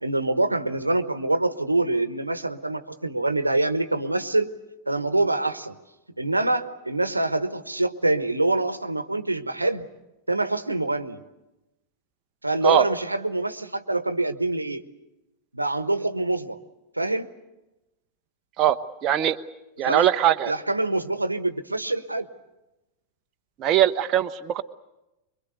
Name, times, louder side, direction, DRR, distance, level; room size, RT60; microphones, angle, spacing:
voice 1, 0.0-4.5 4.9-5.7 6.2-9.9 10.3-11.2 12.4-14.8 15.5-16.6 16.9-17.3 19.8-20.1 20.5-22.3, right 2 dB, 85° right, 12 dB, 1.2 m, -25 dB
voice 2, 19.0-19.4 19.8-20.5 23.6-24.6, right 11 dB, 35° right, 7 dB, 0.9 m, -21 dB
25.5 x 23.5 x 8.1 m, 0.98 s
figure-of-eight pair, 90°, 0 cm